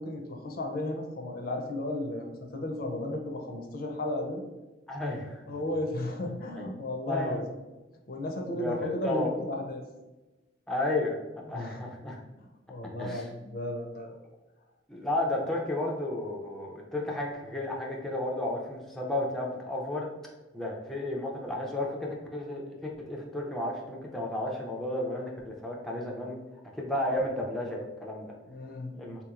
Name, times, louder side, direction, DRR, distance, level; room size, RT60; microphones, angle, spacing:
voice 1, 0.0-4.4 5.5-7.4 8.1-9.8 11.4-11.8 12.4-14.1 28.5-28.9, left 1 dB, 55° left, 3 dB, 0.5 m, -34 dB
voice 2, 4.9-5.4 6.6-6.7 7.1-7.5 8.5-9.3 10.7-11.2 11.5-12.2 13.0-13.3 14.9-20.1 20.5-26.4 26.7-28.3 28.9-29.2, left 1 dB, ahead, -2 dB, 0.4 m, -33 dB
3.6 x 2.9 x 2.4 m, 1.1 s
head